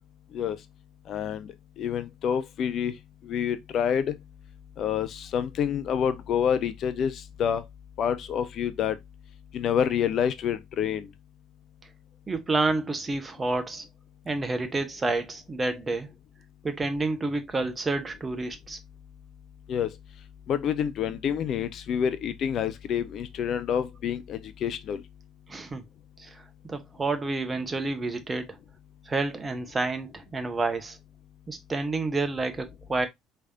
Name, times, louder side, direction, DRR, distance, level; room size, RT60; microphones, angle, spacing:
voice 1, 1.1-2.9 3.2-4.2 4.8-7.6 8.0-9.0 9.5-11.1 19.7-19.9 20.5-25.0, left 8 dB, 50° left, 0.5 m, -28 dB
voice 2, 12.3-13.8 14.2-16.1 16.6-18.8 25.5-25.8 26.2-28.6 29.0-31.0 31.5-33.1, right 3 dB, 25° right, 1.0 m, -29 dB
4.8 x 3.4 x 2.8 m
figure-of-eight pair, 55°, 0 cm